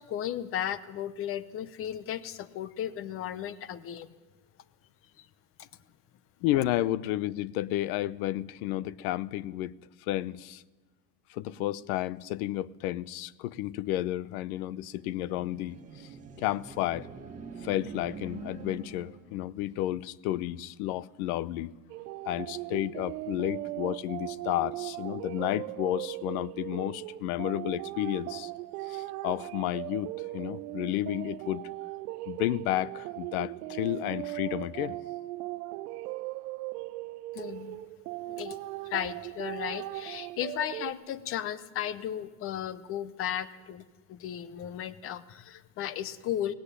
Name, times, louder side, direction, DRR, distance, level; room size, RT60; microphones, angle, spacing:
voice 1, 0.0-4.1 5.2-5.3 5.6-5.7 37.3-37.8 38.3-38.6 38.8-46.5, left 10 dB, 30° left, 0.8 m, -35 dB
voice 2, 6.4-10.6 11.3-16.1 16.4-17.1 17.6-21.7 22.2-28.5 28.8-31.7 32.3-35.0, left 14 dB, 70° left, 0.8 m, -32 dB
sound 1, 14.7-19.4, right 5 dB, 15° right, 2.0 m, -45 dB
sound 2, 21.9-40.9, right 18 dB, 75° right, 0.9 m, -38 dB
18.0 x 16.5 x 9.9 m
supercardioid pair, 160°, 46 cm